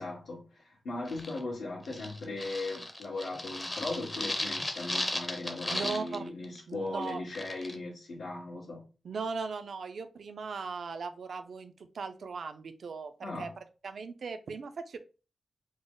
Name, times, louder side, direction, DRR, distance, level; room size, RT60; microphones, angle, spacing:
voice 1, 0.0-8.9 13.2-13.6, left 2 dB, 85° left, 1.3 m, -38 dB
sound 1, 1.1-1.4 1.8-6.2 6.4-6.6 7.0-7.7, left 1 dB, 20° left, 0.6 m, -36 dB
voice 2, 5.7-6.2 6.7-7.2 9.0-13.5 13.8-15.0, right 5 dB, 70° right, 0.4 m, -38 dB
3.8 x 2.0 x 3.7 m
wide cardioid pair, 95°, 0 cm